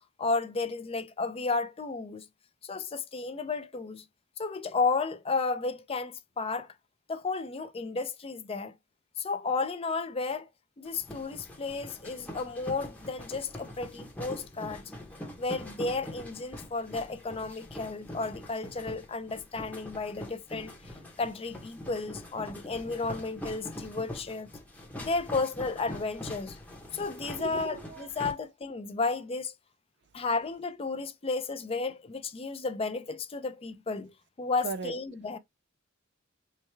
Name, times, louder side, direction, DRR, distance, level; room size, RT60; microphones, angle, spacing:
voice 1, 0.2-2.3 2.6-4.0 4.4-6.7 7.1-8.7 9.2-10.5 10.8-14.8 15.4-24.5 25.0-26.6 26.9-29.5 30.1-35.4, left 3 dB, 30° left, 0.5 m, -33 dB
sound 1, 10.9-28.3, left 1 dB, 5° left, 0.8 m, -43 dB
voice 2, 27.3-28.1 34.6-34.9, right 4 dB, 55° right, 0.4 m, -37 dB
4.6 x 2.3 x 3.2 m
head